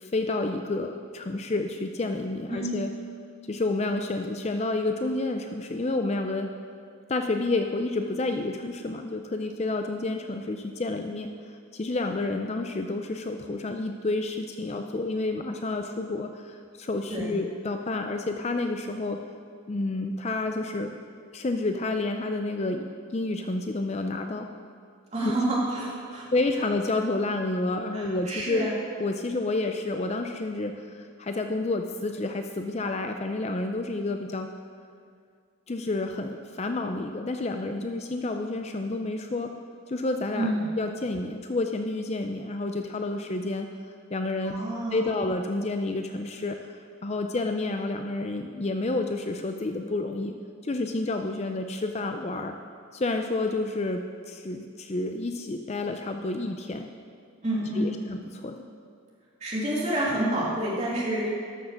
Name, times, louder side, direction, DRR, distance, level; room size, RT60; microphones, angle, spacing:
voice 1, 0.0-2.9 3.5-6.5 7.1-11.3 11.7-19.2 19.7-21.0 21.3-22.8 23.1-24.5 25.2-25.3 26.3-28.7 29.0-34.5 35.7-39.5 39.9-43.7 44.1-44.6 44.9-46.6 47.0-50.3 50.6-52.5 52.9-56.9 57.7-58.6, left 2 dB, 30° left, 5 dB, 0.4 m, -29 dB
voice 2, 17.1-17.4 25.1-26.3 27.9-28.7 40.3-40.6 44.4-45.1 57.4-58.0 59.4-61.3, right 1 dB, 30° right, -6 dB, 2.7 m, -28 dB
13.0 x 6.5 x 6.5 m, 2.2 s
head